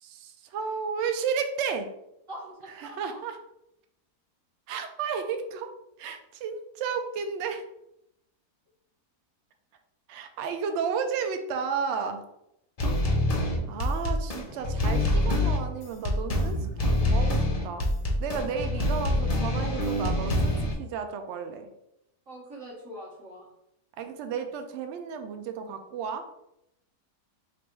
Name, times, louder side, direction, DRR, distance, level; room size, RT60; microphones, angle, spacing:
voice 1, 0.0-1.9 2.8-3.4 4.7-7.6 10.1-12.2 13.7-16.6 16.9-17.9 18.2-21.7 24.0-26.3, right 6 dB, 80° right, 7 dB, 0.6 m, -33 dB
voice 2, 2.3-3.2 10.4-10.5 22.3-23.5, right 1 dB, 55° right, -5 dB, 1.4 m, -43 dB
sound 1, 12.8-20.7, left 1 dB, 65° left, 0.3 m, -26 dB
3.3 x 2.5 x 4.4 m, 0.81 s
omnidirectional pair, 1.7 m